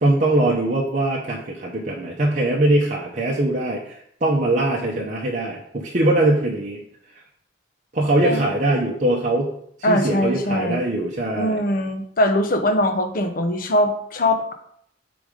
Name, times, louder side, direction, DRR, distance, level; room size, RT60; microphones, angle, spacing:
voice 1, 0.0-6.8 7.9-11.6, right 1 dB, 40° right, -3 dB, 0.7 m, -22 dB
voice 2, 9.8-10.8 11.3-14.5, left 1 dB, 50° left, 6 dB, 0.7 m, -21 dB
5.0 x 3.9 x 5.0 m, 0.69 s
head